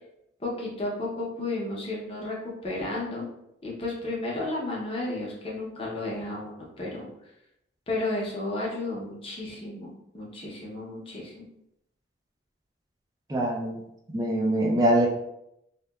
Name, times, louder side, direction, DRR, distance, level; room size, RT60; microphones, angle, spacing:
voice 1, 0.4-3.3 3.6-7.1 7.9-11.4, left 2 dB, 30° left, -4 dB, 0.6 m, -33 dB
voice 2, 13.3-13.8 14.1-15.1, right 1 dB, 20° right, 0 dB, 0.3 m, -23 dB
2.8 x 2.1 x 2.2 m, 0.80 s
head